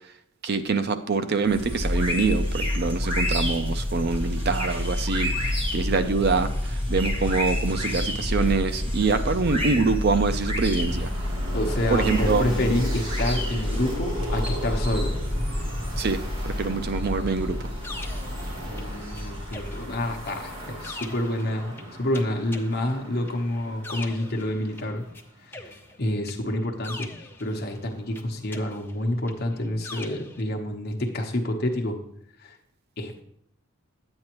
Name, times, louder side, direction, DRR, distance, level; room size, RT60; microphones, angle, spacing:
voice 1, 0.4-11.1 11.9-12.4 16.0-16.2 16.4-17.6, right 4 dB, 50° right, 10 dB, 0.5 m, -25 dB
sound 1, 1.4-20.9, left 1 dB, 25° right, 1.3 m, -28 dB
sound 2, 10.9-25.7 26.8-28.5, equal, 80° right, 2.8 m, -39 dB
voice 2, 11.5-15.1 18.6-25.0 25.4-25.7 26.0-32.0 32.4-32.6 33.0-33.2, left 1 dB, 45° left, 2 dB, 1.0 m, -28 dB
sound 3, 17.3-19.2 19.5-25.2 25.5-27.8 28.2-30.4, left 3 dB, 10° left, 0.5 m, -43 dB
9.6 x 8.8 x 3.0 m, 0.73 s
head